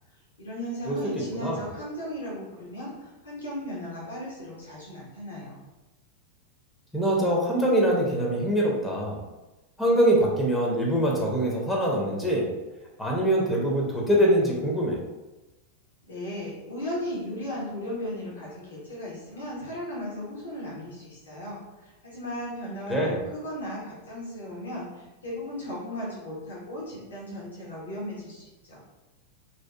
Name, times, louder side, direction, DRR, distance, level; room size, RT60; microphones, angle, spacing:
voice 1, 0.4-5.6 16.1-28.8, left 1 dB, 70° left, -6 dB, 0.8 m, -36 dB
voice 2, 6.9-9.2 9.8-12.5 13.0-15.0 22.9-23.2, right 1 dB, 5° left, -3 dB, 0.5 m, -23 dB
2.6 x 2.3 x 2.2 m, 1.1 s
figure-of-eight pair, 90°, 0 cm